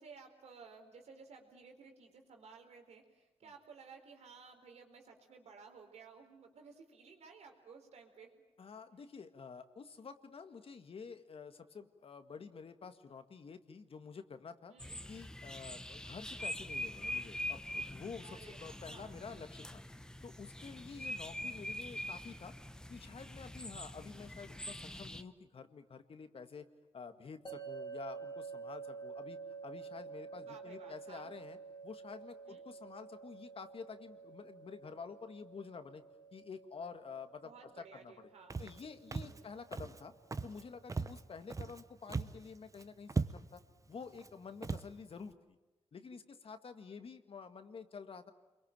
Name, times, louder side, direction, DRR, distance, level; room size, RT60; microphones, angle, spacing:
voice 1, 0.0-8.3 14.7-15.0 18.2-19.2 20.9-21.1 30.3-31.3 32.5-32.6 37.4-38.6 39.3-39.5, right 5 dB, 90° right, 4 dB, 4.2 m, -56 dB
voice 2, 8.6-14.7 15.1-19.8 20.2-22.5 22.9-26.7 26.9-31.6 31.8-36.0 36.3-38.1 38.6-40.1 40.4-43.6 43.9-45.6 45.9-48.3, left 5 dB, 60° left, 9 dB, 1.9 m, -49 dB
sound 1, 14.8-25.2, left 1 dB, 5° left, 1.2 m, -44 dB
sound 2, 27.5-40.6, right 5 dB, 45° left, 3.0 m, -50 dB
Walk footsteps, 38.5-38.8 39.1-39.4 39.7-40.0 40.3-40.6 40.9-41.8 42.1-42.4 42.7-42.8 43.1-43.6 44.2-44.3 44.6-44.9, right 4 dB, 30° right, 1.0 m, -38 dB
28.5 x 22.5 x 9.0 m, 1.1 s
cardioid pair, 80°, 11 cm